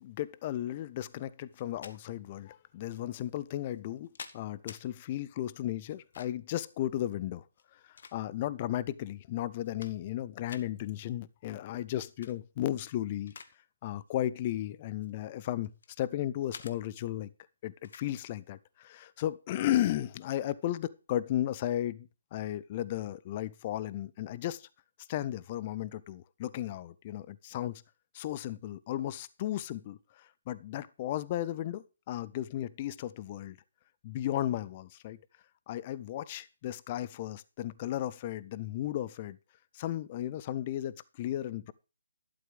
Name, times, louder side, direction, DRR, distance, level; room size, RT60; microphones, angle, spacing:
voice 1, 0.0-7.4 7.7-13.3 13.8-15.7 16.0-17.3 17.6-24.7 25.1-27.8 28.1-33.6 34.0-35.2 35.7-39.4 39.7-41.7, left 13 dB, 25° left, 0.6 m, -35 dB
sound 1, 1.5-2.0 2.9-3.0 3.7-4.8 5.9-6.5 7.5-8.6 9.1-9.2 9.5-10.2 10.5-10.7 12.0-12.3 12.8-13.6 13.8-14.1 14.9-16.0 16.5-16.8 17.8-18.1, left 5 dB, 45° left, 1.1 m, -49 dB
12.5 x 11.5 x 3.4 m
figure-of-eight pair, 145°, 0 cm